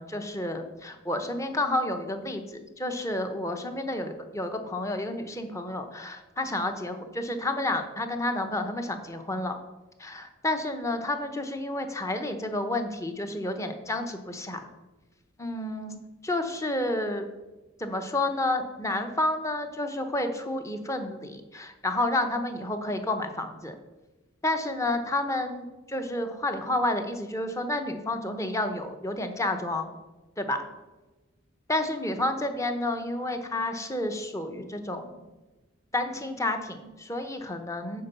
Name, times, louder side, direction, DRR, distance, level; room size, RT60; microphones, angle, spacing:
voice 1, 0.0-9.5 10.0-14.7 15.4-17.2 17.8-23.7 24.4-29.9 30.4-30.7 31.7-35.2 35.9-38.0, left 1 dB, 15° left, 7 dB, 0.8 m, -30 dB
9.3 x 4.5 x 6.8 m, 1.1 s
head